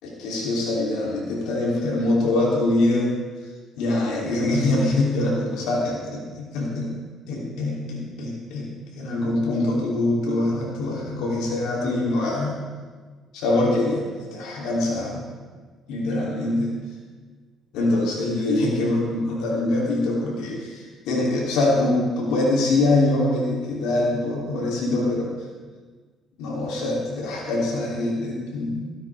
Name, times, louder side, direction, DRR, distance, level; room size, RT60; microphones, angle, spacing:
voice 1, 0.0-3.2 3.8-6.9 7.3-8.7 8.9-12.5 13.3-14.0 14.3-15.2 15.9-16.7 17.7-25.3 26.4-29.0, left 2 dB, 90° left, -4 dB, 3.3 m, -24 dB
16.5 x 13.5 x 3.6 m, 1.5 s
cardioid pair, 95°, 0 cm